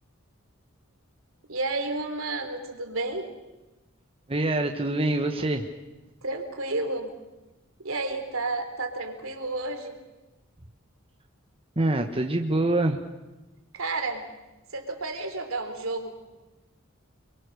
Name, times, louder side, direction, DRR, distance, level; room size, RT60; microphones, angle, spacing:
voice 1, 1.5-3.3 6.2-7.1 7.8-10.0 13.7-14.2 14.7-16.2, right 2 dB, 70° right, 6 dB, 3.5 m, -31 dB
voice 2, 4.3-5.7 11.8-13.0, right 2 dB, 25° right, 4 dB, 1.3 m, -25 dB
29.0 x 23.0 x 6.6 m, 1.1 s
head